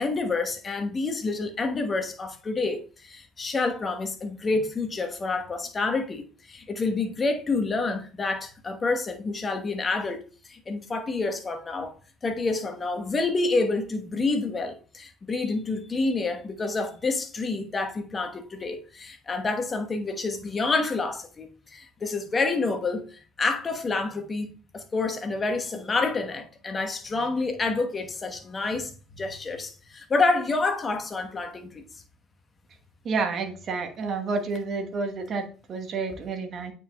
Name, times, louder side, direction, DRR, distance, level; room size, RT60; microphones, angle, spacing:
voice 1, 0.0-11.9 12.2-31.8, left 3 dB, 30° left, 1.1 m, -28 dB
voice 2, 33.0-36.7, right 4 dB, 45° right, 1.1 m, -30 dB
8.7 x 4.8 x 2.3 m
hypercardioid pair, 60°, 0 cm